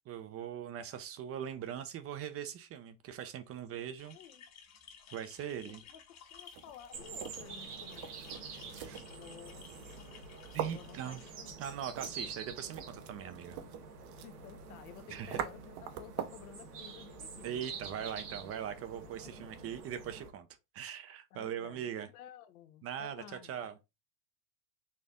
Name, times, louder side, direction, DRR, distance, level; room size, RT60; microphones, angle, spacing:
voice 1, 0.1-4.2 5.1-5.8 8.8-9.0 10.5-11.3 11.6-13.6 15.1-15.4 17.4-20.5 20.7-22.1 22.8-23.7, right 9 dB, 30° right, 0.5 m, -41 dB
voice 2, 3.9-4.4 5.6-8.7 9.1-9.7 10.6-11.6 14.2-18.2 19.2-19.5 21.3-23.7, left 10 dB, 65° left, 0.8 m, -54 dB
sound 1, 4.0-11.3, left 7 dB, 35° left, 1.1 m, -56 dB
sound 2, 6.3-16.5, right 9 dB, 55° right, 0.8 m, -45 dB
sound 3, 6.9-20.3, right 4 dB, 85° right, 1.3 m, -47 dB
4.3 x 2.6 x 3.5 m
hypercardioid pair, 100°, 46 cm